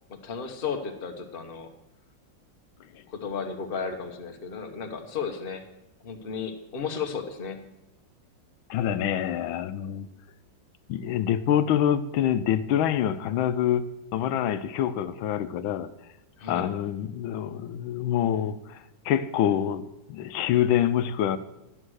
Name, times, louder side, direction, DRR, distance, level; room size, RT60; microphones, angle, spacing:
voice 1, 0.1-1.7 3.1-5.6 6.0-7.6 16.4-16.7, left 6 dB, 35° left, 1.1 m, -34 dB
voice 2, 8.7-10.1 10.9-15.9 16.5-21.4, left 10 dB, 85° left, 1.4 m, -26 dB
12.0 x 8.9 x 6.3 m
omnidirectional pair, 2.1 m